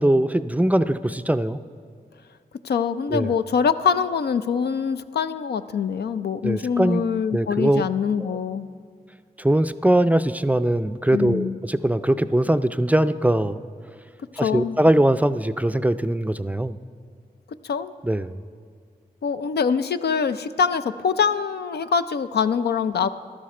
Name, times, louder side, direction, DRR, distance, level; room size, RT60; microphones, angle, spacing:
voice 1, 0.0-1.6 3.1-3.3 6.4-7.0 7.3-7.8 8.2-8.3 9.4-13.6 14.4-16.8 18.0-18.4, right 1 dB, 10° right, 11 dB, 0.4 m, -21 dB
voice 2, 2.6-8.7 11.1-11.6 14.4-14.8 17.6-17.9 19.2-23.1, left 6 dB, 80° left, 11 dB, 0.4 m, -24 dB
14.0 x 12.0 x 4.4 m, 2.1 s
cardioid pair, 55°, 17 cm